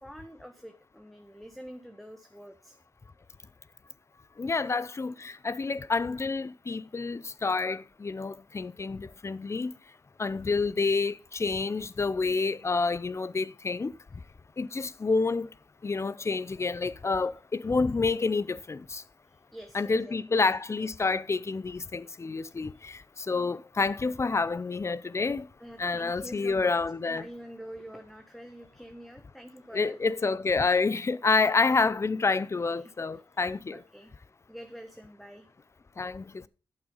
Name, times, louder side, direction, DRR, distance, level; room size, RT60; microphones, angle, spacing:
voice 1, 0.0-2.8 17.2-17.3 19.3-20.4 20.8-20.9 22.7-22.8 25.6-30.0 32.8-32.9 33.7-34.1 34.5-35.5, equal, ahead, 1.0 m, -47 dB
voice 2, 4.4-9.7 10.2-13.9 14.6-15.5 15.8-19.0 19.7-25.5 25.8-27.3 29.7-33.8 36.0-36.5, left 4 dB, 30° left, 0.5 m, -28 dB
8.9 x 7.3 x 5.4 m
cardioid pair, 80°, 9 cm